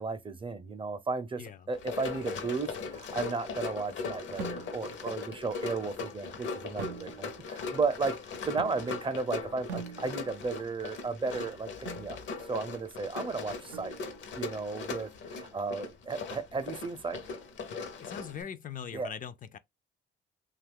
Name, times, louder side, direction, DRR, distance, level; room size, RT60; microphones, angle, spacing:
voice 1, 0.0-8.2 8.4-12.2 12.5-13.9 14.3-17.2 18.9-19.1, right 4 dB, 25° right, 0.5 m, -34 dB
Run, 1.7-18.4, left 5 dB, 70° left, 0.7 m, -39 dB
sound 1, 4.4-5.0 6.8-7.5 8.6-9.2 9.7-10.5 11.9-12.2 13.7-14.3, right 7 dB, 90° right, 0.4 m, -43 dB
voice 2, 18.0-19.6, left 8 dB, 45° left, 0.4 m, -41 dB
2.7 x 2.4 x 3.4 m
cardioid pair, 90°, 20 cm